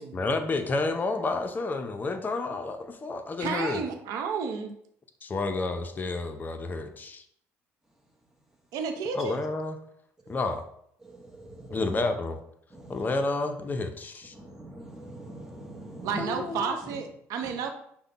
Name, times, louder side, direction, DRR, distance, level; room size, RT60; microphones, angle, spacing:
voice 1, 0.1-3.8 5.2-7.2 9.1-9.8 10.3-10.7 11.7-12.4 12.9-14.3 16.2-16.8, left 3 dB, 30° left, 6 dB, 0.6 m, -30 dB
voice 2, 3.4-4.8 8.7-9.4 16.0-17.7, right 6 dB, 75° right, 5 dB, 0.6 m, -32 dB
voice 3, 14.4-16.2, right 2 dB, 10° right, 1 dB, 1.0 m, -42 dB
5.8 x 2.2 x 4.0 m, 0.70 s
supercardioid pair, 85°, 6 cm